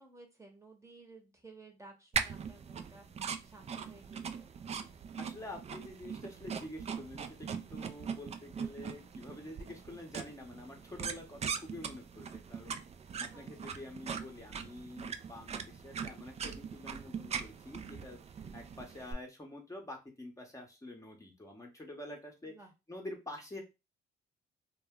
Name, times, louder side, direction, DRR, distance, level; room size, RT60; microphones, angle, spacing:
voice 1, 0.0-4.5 13.3-13.8 22.4-22.7, right 3 dB, 15° right, 3 dB, 0.9 m, -56 dB
sound 1, 2.1-19.1, right 6 dB, 35° right, 0.4 m, -41 dB
voice 2, 5.2-12.8 13.3-18.2 18.5-22.5 22.9-23.6, left 1 dB, 15° left, 0 dB, 0.8 m, -47 dB
2.1 x 2.1 x 3.5 m, 0.26 s
supercardioid pair, 70°, 19 cm